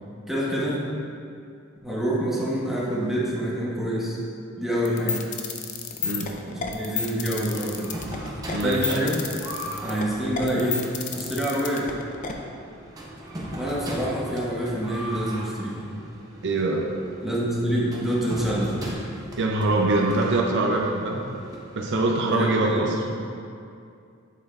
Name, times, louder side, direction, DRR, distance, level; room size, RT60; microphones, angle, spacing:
voice 1, 0.3-0.8 1.8-4.2 4.6-5.2 6.5-7.9 8.6-9.2 9.8-10.8 11.1-11.9 13.5-15.9 17.2-18.9 22.2-22.9, equal, ahead, -7 dB, 1.2 m, -26 dB
sound 1, 4.8-12.3, left 6 dB, 35° left, 0.5 m, -31 dB
sound 2, 7.5-22.2, right 1 dB, 15° right, 0.8 m, -39 dB
voice 2, 8.5-9.0 16.4-16.9 19.4-21.2 21.7-22.9, right 2 dB, 60° right, 0 dB, 0.6 m, -23 dB
7.5 x 7.5 x 2.4 m, 2.4 s
head